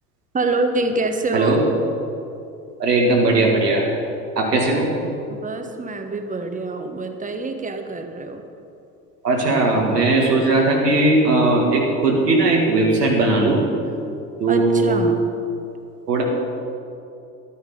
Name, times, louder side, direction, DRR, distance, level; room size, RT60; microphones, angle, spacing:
voice 1, 0.3-1.6 5.3-8.4 14.5-15.3, right 2 dB, 15° right, 6 dB, 1.2 m, -25 dB
voice 2, 1.3-1.6 2.8-3.8 4.4-4.9 9.2-13.6 14.4-15.0 16.1-16.2, right 2 dB, 85° right, -1 dB, 2.1 m, -18 dB
12.0 x 9.4 x 5.4 m, 2.7 s
figure-of-eight pair, 65°, 47 cm